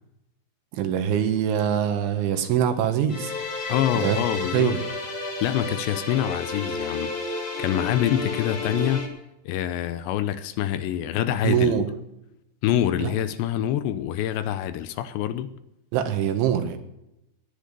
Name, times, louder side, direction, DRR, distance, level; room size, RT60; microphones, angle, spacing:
voice 1, 0.7-3.3 4.0-4.2 4.5-4.8 11.4-11.9 13.0-13.1 15.9-16.8, right 9 dB, 85° right, 3.9 m, -23 dB
sound 1, 3.1-9.1, left 3 dB, 40° left, 4.5 m, -31 dB
voice 2, 3.7-4.8 5.4-7.1 7.6-9.1 9.5-11.8 12.6-15.5, left 11 dB, 80° left, 2.8 m, -26 dB
18.5 x 10.5 x 6.7 m
omnidirectional pair, 5.4 m